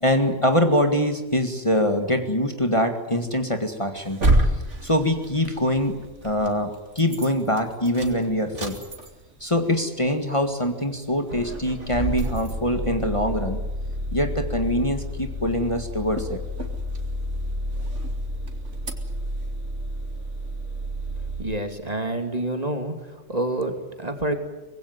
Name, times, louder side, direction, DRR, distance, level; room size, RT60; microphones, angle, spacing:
voice 1, 0.0-4.2 4.8-6.0 6.2-8.9 9.4-13.6 14.1-16.4, equal, 25° left, 5 dB, 2.0 m, -24 dB
sound 1, 4.0-6.5 6.9-7.3 7.6-9.4 9.7-9.8 10.1-10.2 10.8-11.0 11.3-21.4, right 1 dB, 70° right, 3.2 m, -29 dB
voice 2, 21.4-22.9 23.3-24.3, right 2 dB, 30° right, 6 dB, 2.8 m, -27 dB
25.0 x 21.0 x 9.5 m, 1.1 s
omnidirectional pair, 1.3 m